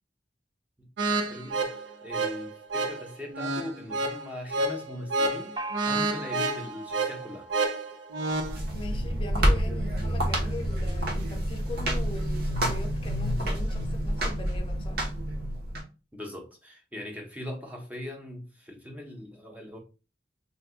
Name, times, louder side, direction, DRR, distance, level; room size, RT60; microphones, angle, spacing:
sound 1, 1.0-8.6, right 2 dB, 85° right, 0.5 m, -30 dB
voice 1, 1.1-5.6 5.8-7.5 16.1-19.8, left 1 dB, 10° right, 0.7 m, -40 dB
Gong, 5.6-9.1, right 2 dB, 25° right, 0.4 m, -41 dB
sound 2, 8.3-15.8, equal, 55° right, 1.0 m, -28 dB
voice 2, 8.7-15.0, left 2 dB, 30° left, 0.6 m, -41 dB
2.8 x 2.3 x 3.6 m
head